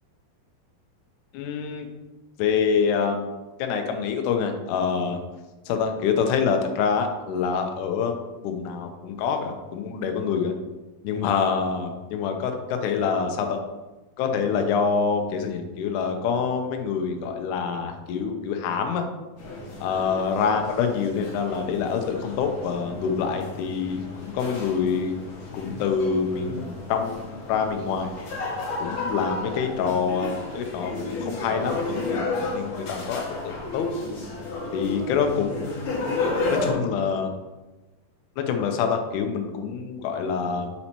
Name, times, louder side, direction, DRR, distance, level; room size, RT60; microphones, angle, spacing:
voice 1, 1.3-1.9 2.4-3.3 3.6-5.2 5.7-8.2 8.4-10.6 11.0-13.6 14.2-19.1 19.8-25.1 25.5-28.1 28.8-33.9 34.7-35.9 36.5-37.3 38.4-40.7, left 6 dB, 80° left, 5 dB, 1.8 m, -26 dB
sound 1, 19.4-36.7, left 3 dB, 65° left, 2.3 m, -32 dB
5.4 x 4.3 x 4.3 m, 1.1 s
omnidirectional pair, 4.3 m